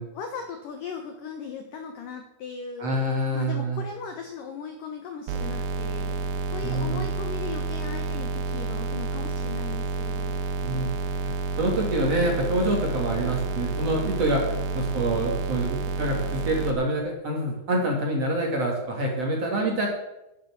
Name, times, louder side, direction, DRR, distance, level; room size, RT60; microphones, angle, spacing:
voice 1, 0.0-3.0 3.3-10.4, left 6 dB, 75° left, 5 dB, 2.0 m, -38 dB
voice 2, 2.8-3.8 6.6-7.0 10.6-10.9 11.6-14.4 14.7-19.9, right 1 dB, 40° right, 0 dB, 3.0 m, -26 dB
sound 1, 5.3-16.7, right 4 dB, 70° right, 3.6 m, -29 dB
10.5 x 10.5 x 8.0 m, 0.92 s
omnidirectional pair, 5.6 m